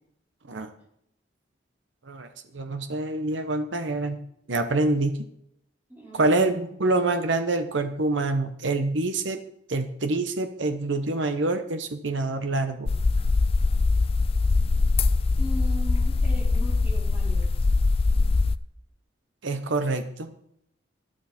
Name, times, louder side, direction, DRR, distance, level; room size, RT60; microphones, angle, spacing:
voice 1, 2.5-4.2 4.5-5.2 6.1-9.4 9.7-12.9 19.4-20.3, right 2 dB, 85° right, 8 dB, 1.0 m, -26 dB
voice 2, 5.9-6.6 15.4-17.4, equal, 10° right, -4 dB, 4.4 m, -38 dB
sound 1, 12.9-18.6, left 3 dB, 30° left, 0.3 m, -22 dB
12.0 x 12.0 x 4.3 m, 0.74 s
head